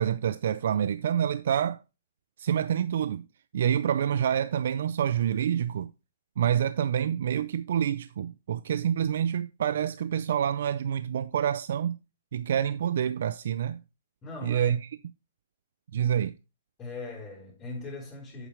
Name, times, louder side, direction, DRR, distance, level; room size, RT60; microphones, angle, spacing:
voice 1, 0.0-1.8 2.4-3.2 3.5-5.9 6.4-12.0 12.3-13.8 14.4-14.9 15.9-16.3, right 9 dB, 60° right, 0.4 m, -27 dB
voice 2, 14.2-14.7 16.8-18.5, left 3 dB, 15° left, 3.5 m, -39 dB
8.2 x 7.2 x 3.2 m
hypercardioid pair, 160°, 0 cm